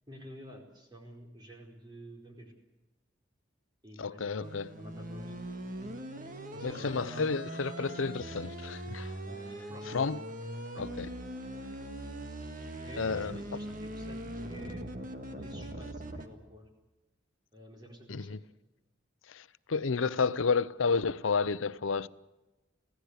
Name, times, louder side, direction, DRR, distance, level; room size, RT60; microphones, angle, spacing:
voice 1, 0.1-2.5 3.8-5.4 6.5-7.3 9.2-9.9 10.7-10.9 11.5-11.6 12.8-14.9 15.3-16.7 17.5-18.4, equal, 20° right, 4.6 m, -50 dB
voice 2, 4.0-4.7 6.6-9.1 9.9-10.2 10.8-11.1 13.0-13.4 18.1-18.4 19.3-22.1, left 5 dB, 90° left, 0.7 m, -31 dB
sound 1, 4.4-16.3, right 1 dB, 45° right, 1.8 m, -41 dB
25.5 x 16.5 x 8.2 m
head